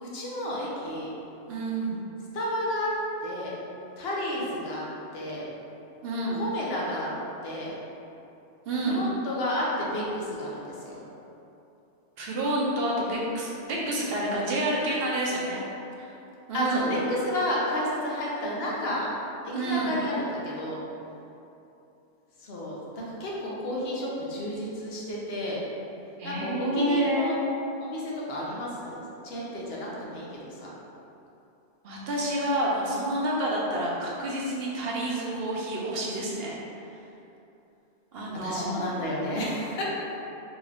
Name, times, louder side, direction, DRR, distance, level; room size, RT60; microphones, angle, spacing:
voice 1, 0.0-1.1 2.3-2.9 3.2-3.6 4.0-4.8 5.1-5.5 6.3-7.1 7.4-7.7 8.9-11.0 16.5-19.1 19.6-20.8 22.4-25.6 26.2-27.3 27.8-29.0 29.2-30.7 38.4-39.8, left 1 dB, 65° left, -5 dB, 0.9 m, -31 dB
voice 2, 1.5-2.0 6.0-6.4 8.7-9.1 12.2-15.6 16.0-16.1 16.5-17.0 19.5-20.0 26.2-27.4 31.8-36.6 38.1-39.0, right 1 dB, 65° right, -4 dB, 0.8 m, -28 dB
3.9 x 3.2 x 2.4 m, 2.8 s
omnidirectional pair, 1.2 m